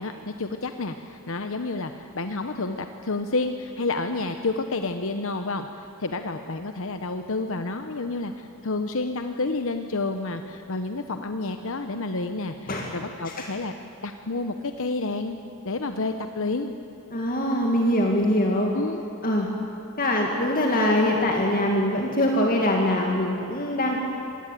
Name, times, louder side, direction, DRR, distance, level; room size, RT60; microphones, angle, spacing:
voice 1, 0.0-13.7 14.0-15.4 15.6-16.7 18.7-19.0, left 3 dB, 60° left, 7 dB, 1.0 m, -30 dB
voice 2, 17.1-18.7 19.2-19.5 20.0-24.0, left 1 dB, 40° left, 0 dB, 2.2 m, -23 dB
26.0 x 19.0 x 9.2 m, 3.0 s
head